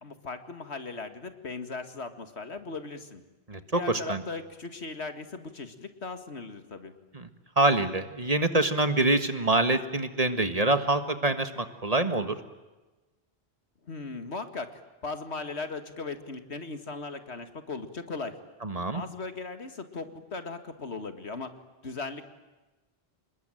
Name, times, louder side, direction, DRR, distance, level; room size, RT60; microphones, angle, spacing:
voice 1, 0.0-3.2 3.7-6.9 13.8-18.4 18.9-21.5 21.8-22.3, left 3 dB, 80° left, 9 dB, 2.3 m, -38 dB
voice 2, 3.5-4.2 7.1-7.3 7.6-12.4 18.6-19.0, right 2 dB, 35° right, 10 dB, 1.7 m, -25 dB
27.0 x 21.0 x 9.2 m, 1.2 s
omnidirectional pair, 1.1 m